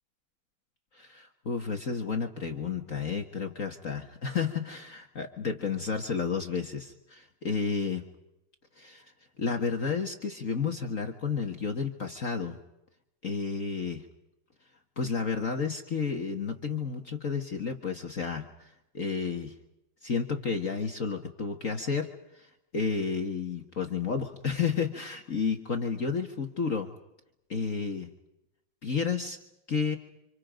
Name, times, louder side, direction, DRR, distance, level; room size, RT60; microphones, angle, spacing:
voice 1, 0.9-8.1 8.8-9.1 9.4-12.6 13.2-14.1 15.0-18.7 18.9-19.5 20.0-22.5 22.7-26.9 27.5-28.1 28.8-29.4 29.7-30.0, left 5 dB, 40° left, 4 dB, 1.8 m, -31 dB
30.0 x 26.5 x 5.2 m, 0.87 s
omnidirectional pair, 2.3 m